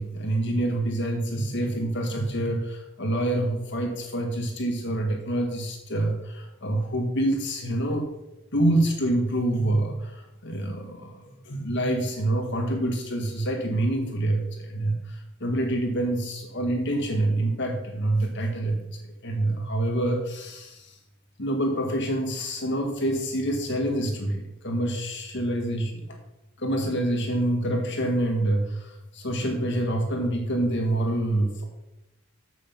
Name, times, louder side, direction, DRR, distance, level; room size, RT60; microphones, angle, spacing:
voice 1, 0.0-8.1 8.5-18.9 19.2-21.0 21.4-26.2 26.6-31.6, right 1 dB, 55° left, 2 dB, 1.7 m, -26 dB
8.3 x 7.9 x 5.7 m, 0.91 s
head